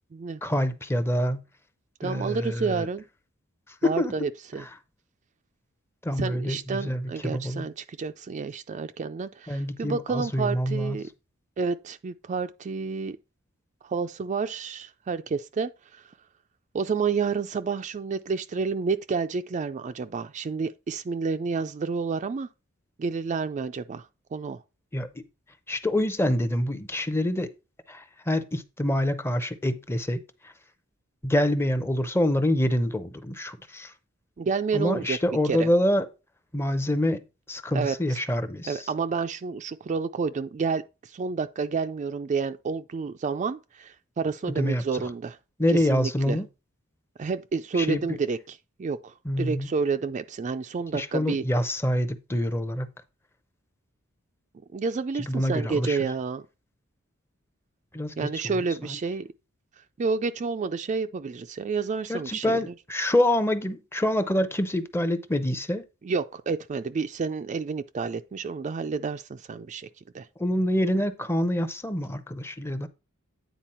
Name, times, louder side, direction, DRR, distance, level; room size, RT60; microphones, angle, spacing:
voice 1, 0.4-1.4 2.0-2.9 3.8-4.1 4.6-4.7 6.0-7.7 9.5-11.0 24.9-25.1 25.7-27.5 27.9-30.2 31.2-33.9 34.7-36.1 36.5-37.2 37.5-38.8 44.6-45.0 45.6-46.5 47.7-48.0 49.2-49.7 50.9-52.9 55.2-56.0 57.9-59.0 62.1-65.9 70.4-72.9, left 1 dB, 10° left, 0.6 m, -26 dB
voice 2, 2.0-3.0 3.8-4.6 6.2-11.1 11.6-13.2 13.8-16.0 16.7-22.5 23.0-24.6 34.4-35.2 35.4-35.7 37.7-38.2 38.7-45.4 45.7-46.4 47.2-51.4 54.7-56.4 58.2-59.3 60.0-62.7 66.0-69.9 70.1-70.3, right 5 dB, 35° right, 0.3 m, -30 dB
9.1 x 4.2 x 4.3 m
head